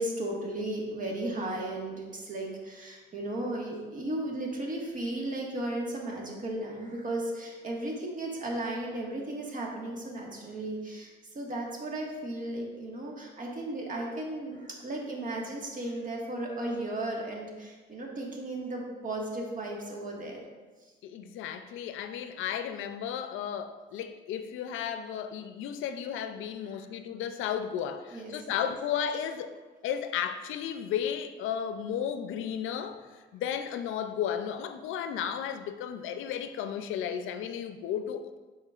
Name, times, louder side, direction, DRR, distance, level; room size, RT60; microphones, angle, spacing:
voice 1, 0.0-20.4 20.8-20.9 26.8-26.9 28.1-28.6, right 1 dB, 40° right, -1 dB, 1.6 m, -35 dB
voice 2, 21.0-29.5 29.8-33.0 33.3-38.4, left 8 dB, 85° left, 9 dB, 0.5 m, -34 dB
11.0 x 4.3 x 2.4 m, 1.3 s
cardioid pair, 90°, 20 cm